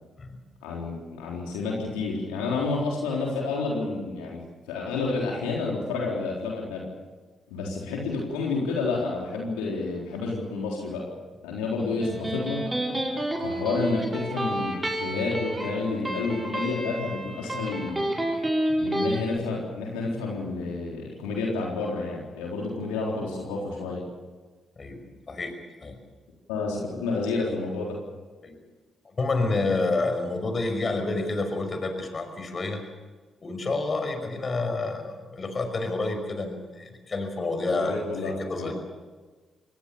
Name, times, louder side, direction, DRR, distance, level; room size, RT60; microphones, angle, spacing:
voice 1, 0.6-4.4 4.7-6.9 7.5-11.1 11.4-12.6 13.4-18.2 18.8-24.0 26.5-28.0 37.7-38.7, left 3 dB, 85° left, -2 dB, 3.9 m, -30 dB
Electric guitar, 11.8-19.2, right 1 dB, 20° right, 7.1 m, -30 dB
voice 2, 29.1-32.8 33.4-38.7, left 3 dB, 40° left, 7 dB, 5.6 m, -29 dB
26.0 x 19.0 x 7.0 m, 1.3 s
hypercardioid pair, 45°, 0 cm